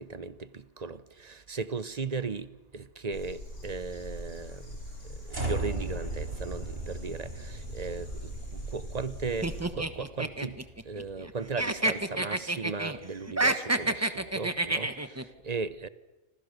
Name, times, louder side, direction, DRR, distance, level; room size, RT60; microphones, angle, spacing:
voice 1, 0.0-4.8 5.0-15.9, right 4 dB, 35° right, 1.0 m, -37 dB
sound 1, 3.1-9.6, equal, 90° left, 7.2 m, -41 dB
sound 2, 5.3-11.6, right 2 dB, 55° right, 4.5 m, -38 dB
sound 3, 9.4-11.3 11.6-13.0 13.3-15.2, right 2 dB, 15° right, 1.1 m, -29 dB
28.5 x 26.0 x 6.7 m
omnidirectional pair, 1.2 m